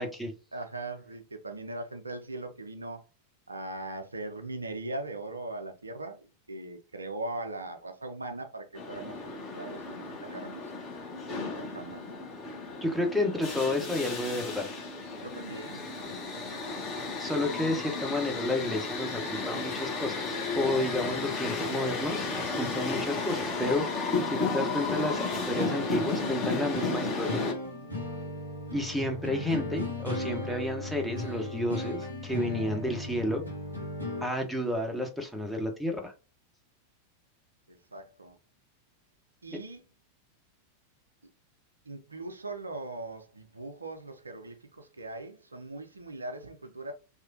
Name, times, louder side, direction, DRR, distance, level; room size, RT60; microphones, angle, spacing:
voice 1, 0.0-0.3 12.8-14.7 17.2-22.3 22.5-23.9 24.3-27.5 28.7-33.4 34.2-36.1, left 1 dB, ahead, 0.7 m, -31 dB
voice 2, 0.5-3.0 3.5-10.7 11.3-12.2 15.2-17.1 37.7-38.4 39.4-39.8 41.9-46.9, right 2 dB, 80° right, 0.5 m, -40 dB
sound 1, 8.8-27.5, left 3 dB, 25° left, 1.2 m, -33 dB
sound 2, 25.1-34.2, left 1 dB, 85° left, 0.9 m, -36 dB
3.0 x 2.4 x 2.6 m
figure-of-eight pair, 90°, 0 cm